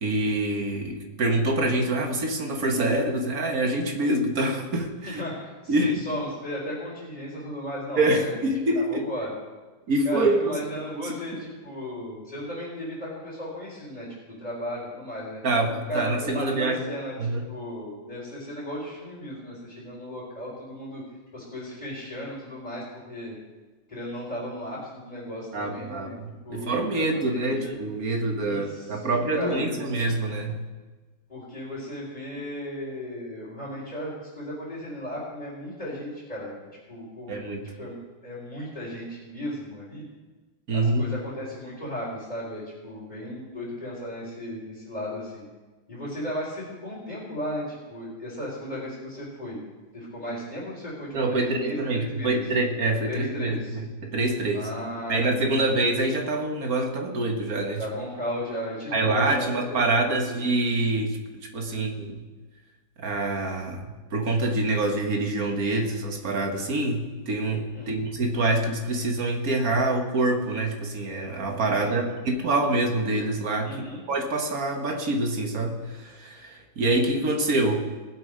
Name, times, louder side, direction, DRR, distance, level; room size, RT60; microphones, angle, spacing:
voice 1, 0.0-5.2 5.7-6.0 8.0-9.1 9.9-10.6 11.0-11.4 15.4-16.8 17.2-17.5 25.5-30.6 37.3-37.6 40.7-41.1 51.1-54.7 55.1-57.8 58.9-61.2 61.5-62.2 63.0-73.7 74.1-77.9, right 2 dB, 50° right, 3 dB, 2.0 m, -26 dB
voice 2, 5.0-8.4 8.7-9.3 10.0-15.4 15.9-21.0 21.3-23.4 23.9-26.1 26.4-27.7 28.4-29.8 31.3-36.6 36.9-37.3 37.8-38.0 38.2-40.0 40.7-45.4 45.9-49.6 49.9-52.4 53.0-53.8 54.5-55.8 57.8-60.4 61.7-61.9 67.7-68.0 71.8-72.1 73.6-74.0, equal, 20° left, -9 dB, 4.1 m, -35 dB
20.0 x 8.1 x 5.1 m, 1.2 s
omnidirectional pair, 2.1 m